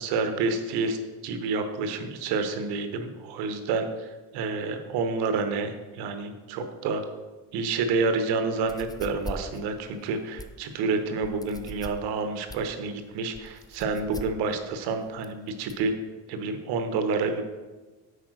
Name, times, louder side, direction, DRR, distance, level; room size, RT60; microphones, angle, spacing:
voice 1, 0.0-7.0 7.5-15.9 16.3-17.4, right 4 dB, 90° right, 7 dB, 1.1 m, -29 dB
sound 1, 8.6-15.9, left 2 dB, 10° left, 0.5 m, -42 dB
8.2 x 4.8 x 6.3 m, 1.2 s
cardioid pair, 105°, 38 cm